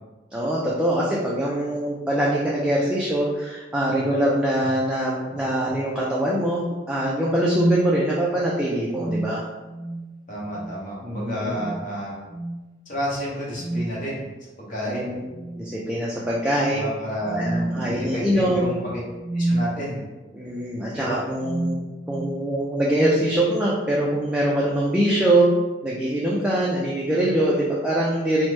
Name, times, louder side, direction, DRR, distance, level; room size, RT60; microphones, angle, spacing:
voice 1, 0.3-9.4 11.0-11.6 14.9-15.2 15.6-16.8 17.4-18.7 20.3-21.8 22.1-25.5 25.8-28.5, right 1 dB, 5° right, -5 dB, 0.3 m, -23 dB
sound 1, 4.0-4.2 4.6-4.8 5.3-5.8 7.4-8.0 8.9-10.2 10.5-10.8 11.5-11.9 12.3-12.6 13.5-14.1 15.3-15.7 16.2-16.3 17.2-19.8 20.7-20.9 21.4-22.4, right 2 dB, 65° left, 1.2 m, -29 dB
voice 2, 10.3-12.1 12.9-14.2 14.6-15.1 16.7-19.0 19.3-20.0 20.9-21.2, equal, 45° left, -6 dB, 0.9 m, -30 dB
3.0 x 2.1 x 3.1 m, 1.2 s
head